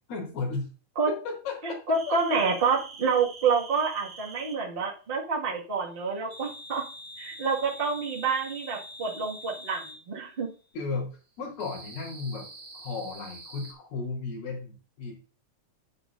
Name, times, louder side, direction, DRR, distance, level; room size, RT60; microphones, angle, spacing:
voice 1, 0.1-0.7 1.1-1.8 2.1-2.2 10.7-11.1 11.4-12.5 12.7-15.1, left 4 dB, 80° left, -6 dB, 5.7 m, -34 dB
voice 2, 1.6-6.8 7.2-10.5, right 5 dB, 25° right, -3 dB, 1.2 m, -28 dB
sound 1, 1.9-4.7 6.3-10.0 11.6-13.7, right 1 dB, 45° right, 3.8 m, -45 dB
10.5 x 9.1 x 2.6 m, 0.36 s
omnidirectional pair, 4.2 m